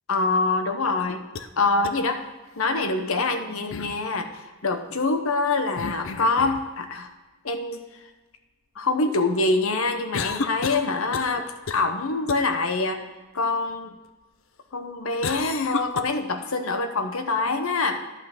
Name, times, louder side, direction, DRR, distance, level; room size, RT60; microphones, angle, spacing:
voice 1, 0.1-1.2 1.6-2.2 2.6-7.1 7.4-7.8 8.8-13.0 13.3-13.9 14.7-18.0, left 3 dB, 85° left, 7 dB, 1.0 m, -25 dB
sound 1, 1.0-1.5 1.8-1.9 3.7-4.0 5.8-6.7 10.1-11.4 11.7-11.9 12.3-12.4 15.2-16.0, left 4 dB, 70° left, 0.5 m, -31 dB
11.0 x 5.4 x 6.0 m, 1.2 s
head